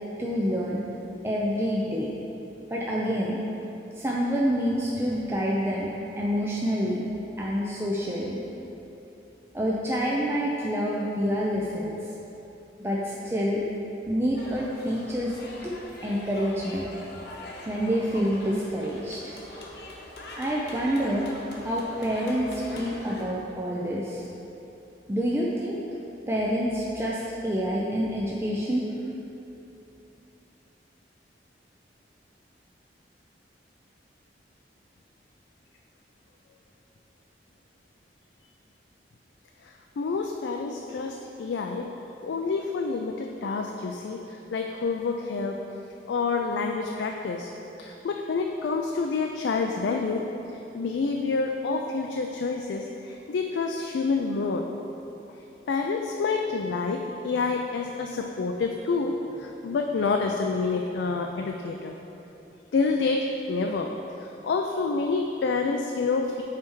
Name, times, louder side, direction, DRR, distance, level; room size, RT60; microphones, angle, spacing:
voice 1, 0.2-0.8 1.2-2.1 2.7-3.4 4.0-7.0 7.4-8.4 9.5-11.9 12.8-13.6 14.1-15.4 15.6-16.9 17.7-19.3 20.4-21.3 21.6-24.3 25.1-25.8 26.3-28.8, equal, 15° right, -4 dB, 0.4 m, -27 dB
sound 1, 14.4-23.2, left 1 dB, 65° left, 0.9 m, -43 dB
voice 2, 39.6-41.9 42.2-45.6 46.1-47.5 47.8-50.2 50.7-54.6 55.7-62.0 62.7-63.9 64.2-66.4, left 4 dB, 80° left, 2 dB, 0.4 m, -28 dB
8.3 x 3.4 x 4.6 m, 3.0 s
head